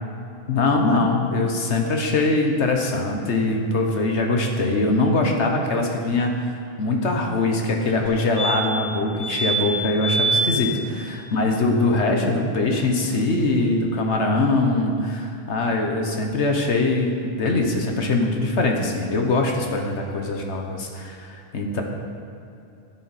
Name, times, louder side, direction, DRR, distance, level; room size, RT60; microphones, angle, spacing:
voice 1, 0.5-21.8, left 2 dB, 65° left, 2 dB, 1.3 m, -22 dB
sound 1, 8.1-8.2 8.4-8.9 9.2-9.6 10.0-10.4 12.8-12.9 13.1-13.2, right 3 dB, 80° right, 3.0 m, -24 dB
12.0 x 7.6 x 4.2 m, 2.7 s
omnidirectional pair, 1.3 m